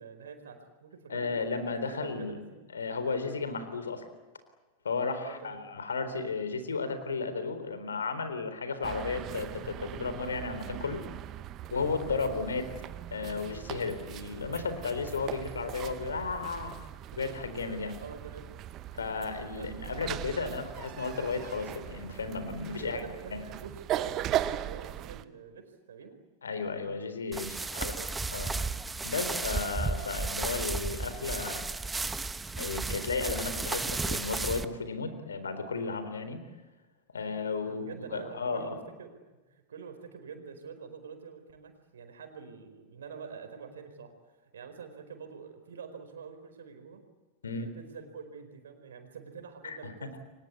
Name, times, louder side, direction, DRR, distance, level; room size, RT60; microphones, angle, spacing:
voice 1, 0.0-1.4 1.9-2.7 5.2-5.6 12.4-12.5 18.0-18.5 19.5-19.7 22.8-26.2 27.7-28.7 29.1-29.4 37.6-39.1 39.5-44.1 44.5-47.0 47.5-50.2, right 6 dB, 65° right, 7 dB, 4.7 m, -46 dB
voice 2, 1.1-2.4 2.7-4.0 4.8-11.0 11.7-12.6 13.1-16.7 17.1-18.0 19.0-23.0 23.3-23.4 26.4-27.9 28.3-28.5 29.0-31.7 32.6-36.4 37.1-38.8 47.4-47.7 49.6-50.1, left 4 dB, 70° left, 10 dB, 3.9 m, -34 dB
sound 1, 8.8-25.2, right 12 dB, 35° right, 1.1 m, -39 dB
sound 2, 27.3-34.7, right 3 dB, 10° right, 1.2 m, -34 dB
29.5 x 24.0 x 8.4 m, 1.2 s
figure-of-eight pair, 90°, 0 cm